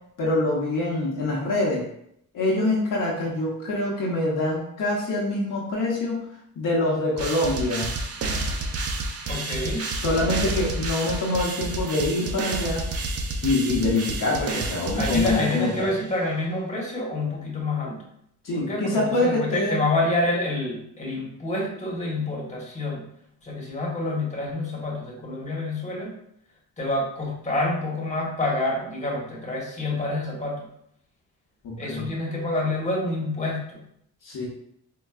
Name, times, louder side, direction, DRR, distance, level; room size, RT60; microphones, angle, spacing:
voice 1, 0.2-1.9 2.3-6.3 6.6-7.9 10.0-12.8 13.4-15.9 18.4-19.8 31.6-32.1 34.2-34.5, left 2 dB, 60° left, -4 dB, 0.9 m, -25 dB
sound 1, 7.2-16.0, right 2 dB, 40° right, 0.5 m, -30 dB
voice 2, 9.2-9.9 14.9-18.0 18.5-23.1 23.4-26.1 26.8-30.7 31.8-33.8, left 2 dB, 20° left, -3 dB, 1.2 m, -28 dB
4.5 x 2.2 x 2.4 m, 0.74 s
cardioid pair, 70°, 37 cm